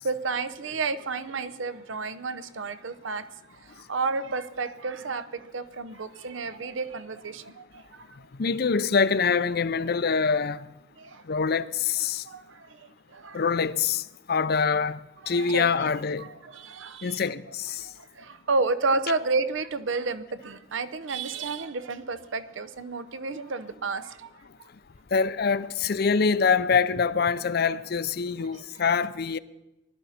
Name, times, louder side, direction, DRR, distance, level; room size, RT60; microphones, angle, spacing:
voice 1, 0.0-3.3 3.6-8.1 11.0-11.2 12.2-13.4 15.3-17.2 17.8-24.3 28.5-28.6, right 3 dB, 75° right, 0.7 m, -31 dB
voice 2, 8.4-10.7 11.3-12.2 13.3-14.0 14.3-15.0 15.3-16.3 17.0-17.9 25.1-29.4, left 5 dB, 50° left, 0.5 m, -25 dB
19.5 x 12.5 x 4.3 m
head